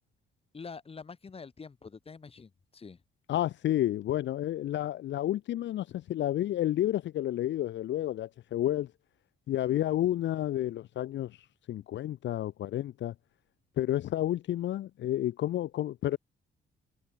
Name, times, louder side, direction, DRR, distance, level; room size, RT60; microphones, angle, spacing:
voice 1, 0.5-3.0 9.7-9.8, left 5 dB, 30° left, 1.5 m, -46 dB
voice 2, 3.3-8.9 9.5-13.1 13.8-16.2, left 13 dB, 65° left, 0.7 m, -30 dB
cardioid pair, 90°, 20 cm